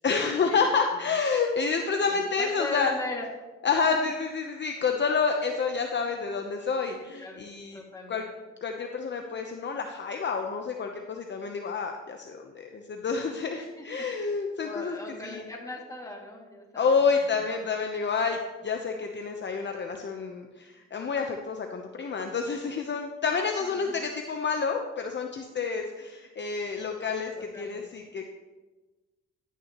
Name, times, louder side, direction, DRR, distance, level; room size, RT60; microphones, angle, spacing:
voice 1, 0.0-2.9 3.6-7.8 8.1-8.2 8.6-15.4 16.7-18.4 18.6-28.2, left 5 dB, 35° left, 3 dB, 0.9 m, -29 dB
voice 2, 2.1-3.3 3.8-3.9 7.2-7.4 7.7-8.2 13.5-13.8 14.6-17.0 17.5-17.6 23.6-24.0 27.3-27.8, left 2 dB, 10° left, -1 dB, 2.3 m, -38 dB
11.5 x 9.3 x 3.0 m, 1.2 s
cardioid pair, 90°, 30 cm